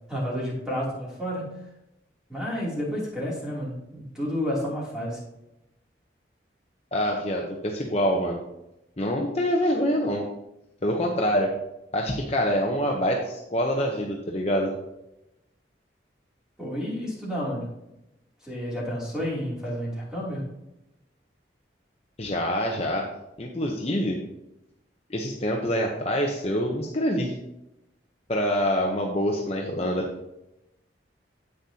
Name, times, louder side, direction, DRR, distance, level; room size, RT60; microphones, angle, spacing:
voice 1, 0.1-1.5 2.3-5.2 16.6-17.7 18.4-20.4, equal, 5° right, -6 dB, 2.9 m, -30 dB
voice 2, 6.9-8.4 9.0-10.2 10.8-11.5 11.9-14.7 22.2-23.1 23.4-24.2 25.1-27.3 28.3-30.1, equal, 35° left, 0 dB, 0.8 m, -25 dB
9.8 x 8.4 x 2.8 m, 0.90 s
head